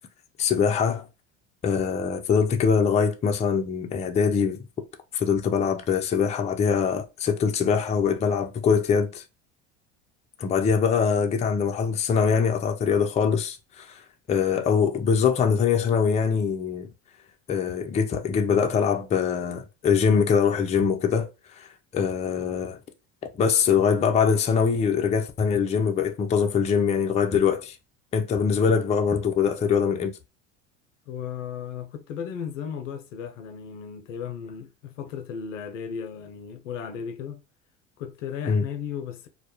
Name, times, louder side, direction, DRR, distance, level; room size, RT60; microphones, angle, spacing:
voice 1, 0.4-1.1 1.6-4.6 5.1-9.2 10.4-14.0 14.3-16.9 17.5-21.3 21.6-22.8 23.4-27.8 28.1-30.1 38.5-38.6, left 6 dB, 20° left, 0.4 m, -23 dB
voice 2, 31.1-37.4 38.0-39.3, left 7 dB, 80° left, 0.5 m, -35 dB
2.2 x 2.0 x 2.8 m
hypercardioid pair, 75°, 37 cm